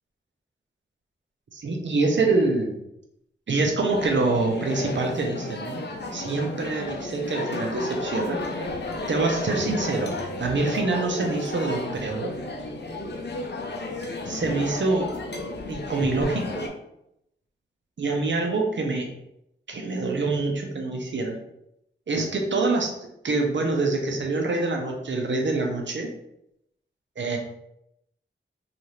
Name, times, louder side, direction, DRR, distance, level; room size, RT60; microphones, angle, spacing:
voice 1, 1.5-2.8 3.5-5.8 6.1-8.4 9.1-12.3 14.2-15.1 15.7-16.7 18.0-19.1 19.7-21.4 22.1-22.9 23.2-26.1 27.2-27.4, right 3 dB, 65° right, 2 dB, 0.7 m, -25 dB
sound 1, 3.9-16.7, left 2 dB, 60° left, 0.5 m, -33 dB
2.6 x 2.4 x 3.1 m, 0.79 s
cardioid pair, 50°, 20 cm